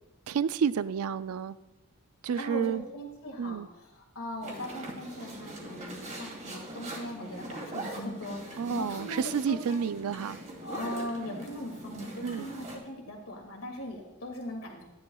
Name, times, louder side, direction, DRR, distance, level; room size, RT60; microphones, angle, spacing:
voice 1, 0.3-1.6 2.2-2.8 3.4-3.7 8.6-10.4 12.2-12.5, right 7 dB, 70° right, 15 dB, 0.4 m, -30 dB
voice 2, 2.4-9.8 10.6-14.8, left 1 dB, 65° left, 1 dB, 2.2 m, -39 dB
sound 1, 4.4-12.8, right 1 dB, 35° right, 2.1 m, -42 dB
13.0 x 10.5 x 2.3 m, 1.0 s
head